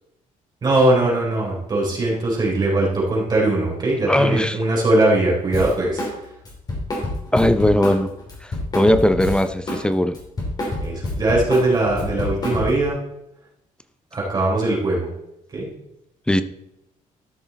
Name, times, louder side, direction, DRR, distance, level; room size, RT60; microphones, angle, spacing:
voice 1, 0.6-6.0 10.8-13.0 14.1-15.1 15.5-15.7, right 2 dB, 30° right, -3 dB, 3.6 m, -20 dB
voice 2, 4.1-4.6 7.3-8.1 8.4-10.2 16.3-16.4, left 1 dB, 5° left, 11 dB, 0.5 m, -18 dB
Drum kit, 5.5-6.2 6.4-9.8 10.1-12.9, left 1 dB, 30° left, 2.9 m, -27 dB
13.0 x 6.2 x 4.0 m, 0.85 s
cardioid pair, 145°, 14 cm